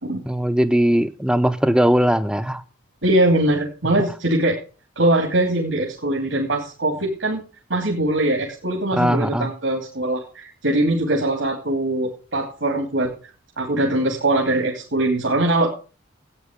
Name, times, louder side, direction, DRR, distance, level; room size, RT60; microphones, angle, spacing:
voice 1, 0.2-2.6 8.9-9.5, equal, 5° right, 11 dB, 0.6 m, -19 dB
voice 2, 3.0-4.6 5.0-7.4 7.7-13.1 13.6-15.7, right 1 dB, 75° right, 0 dB, 3.0 m, -21 dB
13.0 x 9.2 x 5.2 m, 0.36 s
head